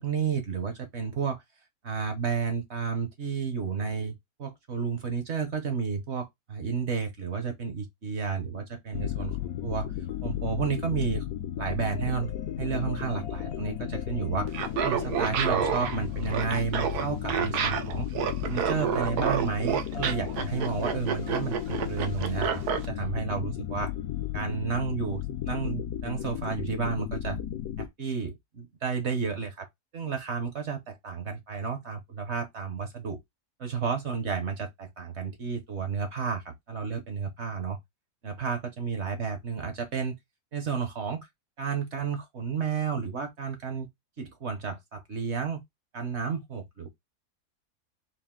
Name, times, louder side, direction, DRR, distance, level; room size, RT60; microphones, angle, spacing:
voice 1, 0.0-1.4 1.8-9.4 9.6-9.9 10.2-11.2 11.6-12.3 12.6-14.6 14.8-18.1 18.4-23.9 24.3-27.4 27.8-29.7 29.9-33.2 33.6-37.8 38.2-40.1 40.5-41.3 41.6-43.9 44.2-45.6 45.9-46.9, right 6 dB, 50° right, 1.0 m, -32 dB
sound 1, 8.9-27.9, left 10 dB, 70° left, 1.0 m, -34 dB
Laughter, 14.5-22.9, right 8 dB, 70° right, 1.2 m, -29 dB
4.2 x 2.5 x 3.7 m
omnidirectional pair, 1.8 m